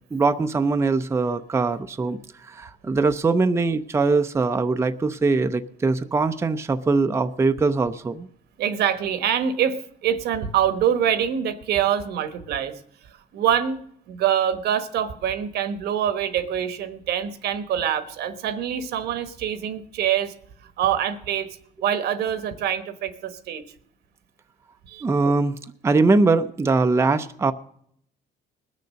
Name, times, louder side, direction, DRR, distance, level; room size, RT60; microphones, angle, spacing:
voice 1, 0.1-8.3 25.0-25.6 25.8-27.5, right 3 dB, 15° right, 8 dB, 0.6 m, -22 dB
voice 2, 8.6-12.7 13.0-13.8 14.1-20.3 20.6-23.6 24.9-25.0, right 9 dB, 75° right, 12 dB, 1.2 m, -25 dB
20.0 x 6.7 x 6.4 m, 0.68 s
cardioid pair, 110°, 17 cm